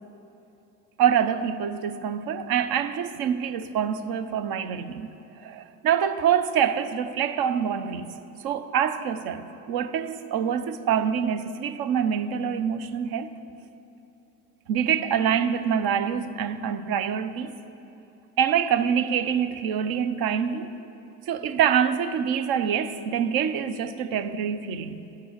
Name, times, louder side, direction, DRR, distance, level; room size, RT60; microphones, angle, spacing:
voice 1, 1.0-5.1 5.4-8.1 8.4-13.3 14.7-17.5 18.4-20.7 21.3-25.0, right 8 dB, 60° right, 0.8 m, -25 dB
12.0 x 6.0 x 7.4 m
hypercardioid pair, 70°, 40 cm